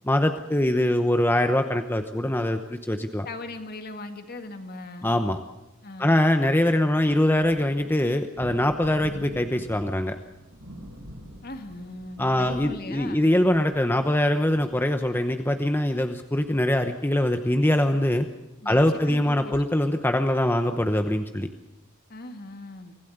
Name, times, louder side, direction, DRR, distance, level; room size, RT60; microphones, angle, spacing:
voice 1, 0.0-3.3 5.0-5.4 6.0-10.2 12.2-18.3 18.6-21.5, left 1 dB, 10° left, 7 dB, 0.9 m, -23 dB
voice 2, 3.2-5.1 5.8-6.2 11.4-13.3 18.6-19.6 22.1-23.0, left 2 dB, 45° left, 7 dB, 2.1 m, -39 dB
sound 1, 8.3-15.4 16.4-16.5 16.8-17.1 17.7-17.8, equal, 90° right, 4.7 m, -45 dB
25.0 x 16.0 x 8.0 m, 1.0 s
head